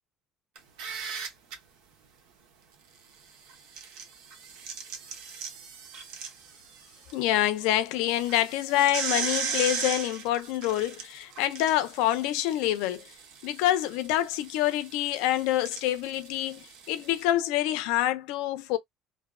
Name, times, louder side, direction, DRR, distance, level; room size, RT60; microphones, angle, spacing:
sound 1, 0.6-1.5 3.5-7.1 7.5-7.6 8.0-17.2, right 6 dB, 85° right, 0.7 m, -37 dB
voice 1, 7.1-13.1 13.4-18.8, left 13 dB, 90° left, 0.4 m, -26 dB
2.6 x 2.1 x 2.3 m
cardioid pair, 160°, 0 cm